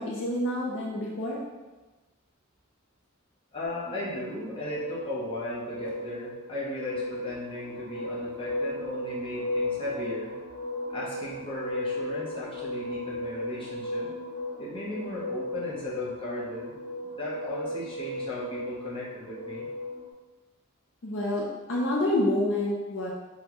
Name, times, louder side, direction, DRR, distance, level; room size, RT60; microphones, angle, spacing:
voice 1, 0.0-1.4 21.0-23.1, left 1 dB, 60° left, -3 dB, 0.5 m, -28 dB
voice 2, 3.5-10.3 10.9-14.1 14.6-16.8 17.1-19.7, left 1 dB, 25° left, -7 dB, 0.8 m, -36 dB
sound 1, 3.6-20.1, left 1 dB, 10° right, 0.8 m, -36 dB
4.2 x 2.2 x 3.0 m, 1.2 s
head